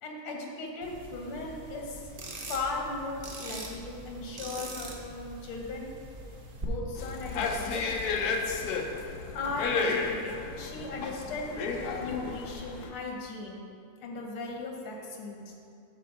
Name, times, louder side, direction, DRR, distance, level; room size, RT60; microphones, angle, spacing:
voice 1, 0.0-2.1 2.5-5.9 6.6-8.0 9.3-11.6 12.0-13.6 14.0-15.5, left 3 dB, 85° left, 0 dB, 2.0 m, -37 dB
sound 1, 0.8-6.6, right 1 dB, 65° right, 0.5 m, -43 dB
sound 2, 6.9-12.9, left 4 dB, 70° left, 0.9 m, -32 dB
13.0 x 4.7 x 3.8 m, 2.4 s
omnidirectional pair, 2.3 m